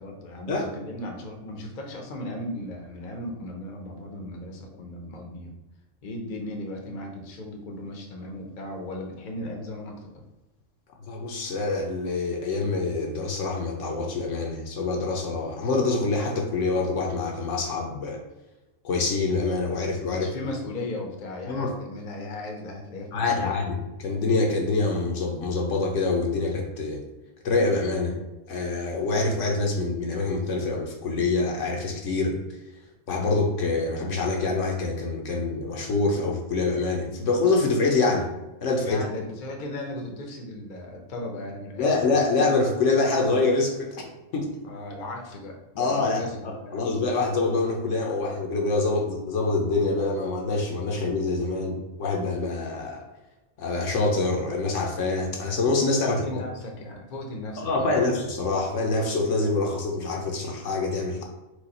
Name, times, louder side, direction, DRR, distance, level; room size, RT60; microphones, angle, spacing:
voice 1, 0.0-5.5 6.0-10.2 20.1-23.5 38.8-41.9 44.6-47.0 56.0-58.0, left 1 dB, 45° left, 1 dB, 0.8 m, -36 dB
voice 2, 11.1-18.2 18.8-20.3 21.5-21.7 23.1-27.0 27.4-28.2 28.5-32.4 33.1-38.3 38.6-39.0 41.8-44.0 44.3-44.5 45.8-53.0 53.6-56.4 57.6-61.2, left 3 dB, 70° left, 1 dB, 1.1 m, -25 dB
4.7 x 2.4 x 4.1 m, 1.1 s
omnidirectional pair, 1.3 m